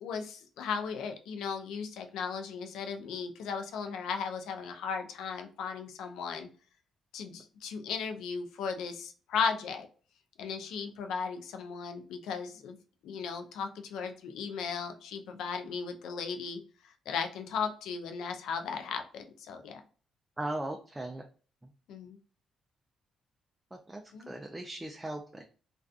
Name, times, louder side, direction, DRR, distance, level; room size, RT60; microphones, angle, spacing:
voice 1, 0.0-6.5 7.1-9.9 10.4-12.8 13.0-19.8 21.9-22.2 24.1-24.3, left 6 dB, 85° left, 6 dB, 0.4 m, -36 dB
voice 2, 20.4-21.2 23.9-24.0 24.3-25.4, right 1 dB, 15° right, 2 dB, 0.3 m, -37 dB
2.4 x 2.3 x 2.4 m, 0.39 s
cardioid pair, 90°, 0 cm